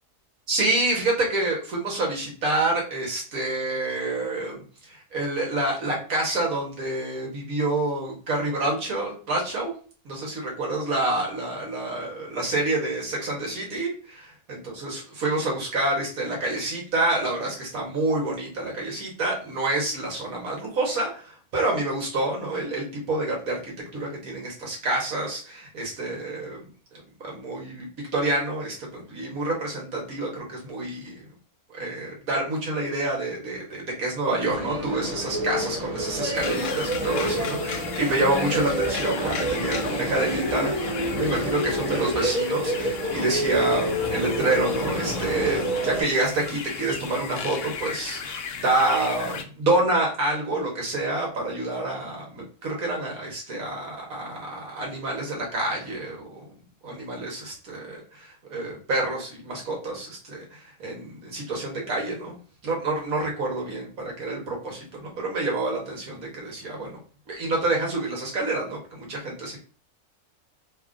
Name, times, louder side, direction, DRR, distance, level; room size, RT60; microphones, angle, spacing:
voice 1, 0.5-4.6 4.9-9.7 10.0-23.6 23.9-26.6 27.2-27.9 28.1-31.1 31.7-40.8 41.2-56.5 56.8-67.0 67.3-69.6, right 2 dB, 75° right, -2 dB, 1.5 m, -28 dB
sound 1, 34.5-46.0, equal, 35° right, 1.2 m, -28 dB
sound 2, 36.3-49.4, left 6 dB, 65° left, 0.6 m, -36 dB
3.2 x 2.4 x 3.6 m, 0.40 s
omnidirectional pair, 1.6 m